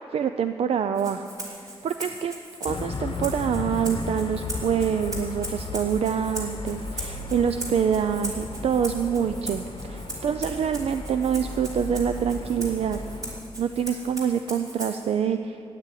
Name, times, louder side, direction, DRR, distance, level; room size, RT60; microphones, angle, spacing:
voice 1, 0.1-2.3 2.6-13.0 13.6-15.6, right 8 dB, 75° right, 9 dB, 0.4 m, -26 dB
Rattle (instrument), 0.9-15.1, right 1 dB, 35° right, 3.0 m, -39 dB
sound 1, 2.7-13.4, left 3 dB, 55° left, 0.9 m, -35 dB
12.5 x 9.1 x 9.2 m, 2.5 s
wide cardioid pair, 165°, 10 cm